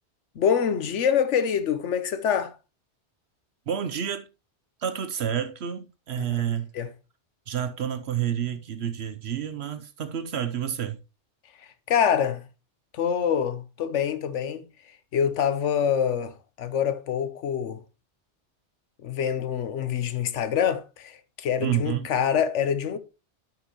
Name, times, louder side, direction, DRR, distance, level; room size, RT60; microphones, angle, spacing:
voice 1, 0.4-2.5 6.2-6.3 6.7-6.9 11.9-12.4 12.9-14.7 15.1-17.8 19.0-23.0, left 8 dB, 90° left, 1.2 m, -25 dB
voice 2, 3.7-4.3 4.8-6.7 7.5-11.0 21.6-22.1, right 9 dB, 65° right, 1.0 m, -29 dB
12.0 x 5.7 x 3.0 m
omnidirectional pair, 1.2 m